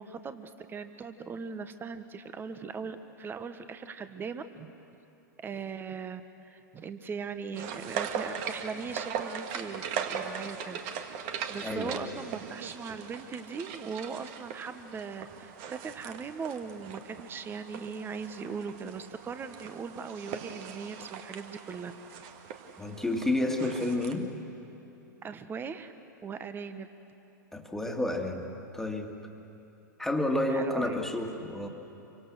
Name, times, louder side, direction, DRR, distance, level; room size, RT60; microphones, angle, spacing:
voice 1, 0.0-4.7 5.4-10.8 11.1-21.9 25.2-25.9 26.2-26.9 30.5-31.0, right 5 dB, 20° right, 10 dB, 1.4 m, -39 dB
sound 1, 7.6-24.1, right 7 dB, 45° right, 1.9 m, -40 dB
voice 2, 11.6-12.1 22.8-24.3 27.5-29.2 30.0-31.7, left 1 dB, 5° left, 3 dB, 2.3 m, -30 dB
27.0 x 24.5 x 6.4 m, 2.9 s
figure-of-eight pair, 100°, 10 cm